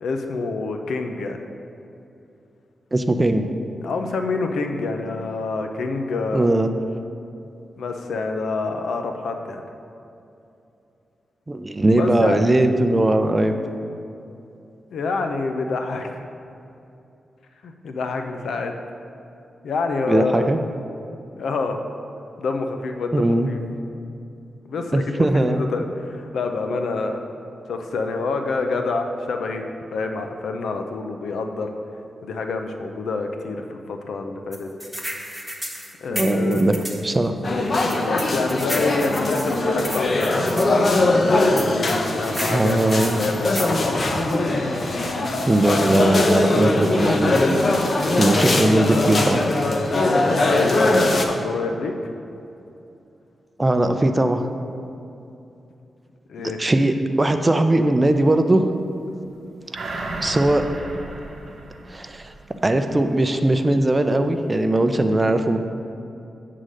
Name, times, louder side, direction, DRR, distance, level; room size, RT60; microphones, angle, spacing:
voice 1, 0.0-1.4 3.8-6.5 7.8-9.6 11.8-12.4 14.9-16.2 17.6-18.7 19.6-20.5 21.4-21.8 22.4-23.6 24.7-27.2 27.7-29.6 29.9-31.7 32.2-34.7 36.0-36.6 38.0-40.5 41.5-43.9 47.9-48.4 50.2-52.1 56.3-56.6, left 3 dB, 85° left, 5 dB, 0.6 m, -27 dB
voice 2, 2.9-3.5 6.3-6.7 11.5-13.6 20.0-20.6 23.1-23.5 24.9-25.6 36.1-36.7 37.0-37.3 42.5-43.2 45.5-47.5 48.2-49.4 53.6-54.4 56.6-58.7 60.2-60.7 61.9-62.3 62.6-65.6, right 1 dB, 25° right, 7 dB, 0.5 m, -19 dB
sound 1, 34.5-37.0 37.9-40.7 41.6-43.8, equal, ahead, 1.0 m, -32 dB
sound 2, 37.4-51.3, left 2 dB, 50° left, 0.7 m, -21 dB
sound 3, 59.7-62.7 63.0-63.1, right 2 dB, 60° right, 0.9 m, -33 dB
8.1 x 3.8 x 6.4 m, 2.7 s
cardioid pair, 85°, 0 cm